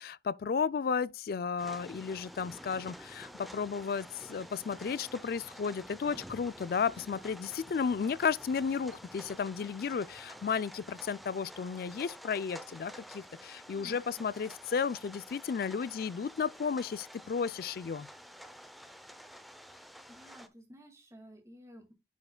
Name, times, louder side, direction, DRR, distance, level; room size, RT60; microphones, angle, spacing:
voice 1, 0.0-18.1, left 6 dB, 55° left, 0.3 m, -33 dB
sound 1, 1.6-20.5, equal, ahead, 0.5 m, -50 dB
voice 2, 13.7-14.3 20.1-21.9, equal, 15° right, 2.0 m, -53 dB
10.5 x 5.5 x 2.2 m
head